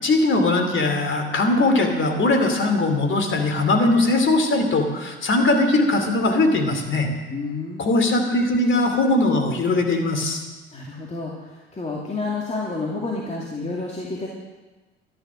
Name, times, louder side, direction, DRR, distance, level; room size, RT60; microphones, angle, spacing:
voice 1, 0.0-7.1 7.8-10.4, left 2 dB, 40° left, 5 dB, 2.8 m, -20 dB
voice 2, 7.3-7.9 10.7-14.3, left 3 dB, 20° left, -3 dB, 2.5 m, -30 dB
12.0 x 10.5 x 6.3 m, 1.2 s
hypercardioid pair, 65°, 30 cm